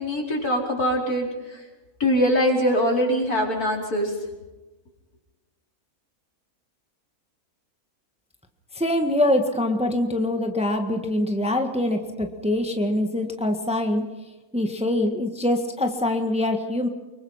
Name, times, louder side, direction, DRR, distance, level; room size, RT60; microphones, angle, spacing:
voice 1, 0.0-1.6 2.0-4.2, equal, 75° left, -1 dB, 5.4 m, -23 dB
voice 2, 8.7-14.0 14.5-16.9, left 1 dB, 5° right, 4 dB, 1.6 m, -24 dB
25.0 x 23.0 x 5.8 m, 1.1 s
omnidirectional pair, 1.6 m